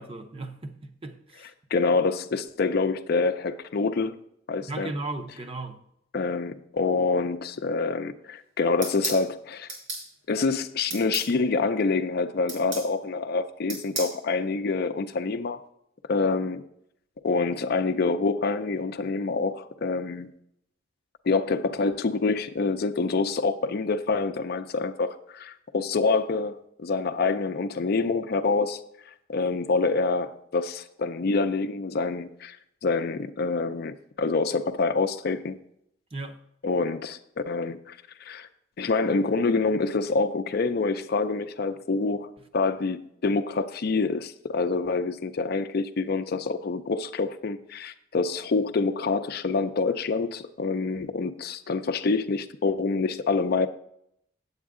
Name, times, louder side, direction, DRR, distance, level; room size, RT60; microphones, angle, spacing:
voice 1, 0.0-1.5 4.7-5.8 36.1-36.4, right 2 dB, 30° right, 0.7 m, -36 dB
voice 2, 1.4-4.2 4.5-4.9 6.1-9.7 10.3-15.6 16.1-16.6 17.2-20.3 21.2-28.8 29.3-32.6 32.8-35.6 36.6-38.5 38.8-53.7, left 4 dB, 50° left, 0.4 m, -26 dB
sound 1, 8.8-9.2 9.7-10.1 10.9-11.3 12.5-12.9 13.7-14.2, right 3 dB, 70° right, 3.4 m, -32 dB
8.5 x 8.0 x 3.7 m
head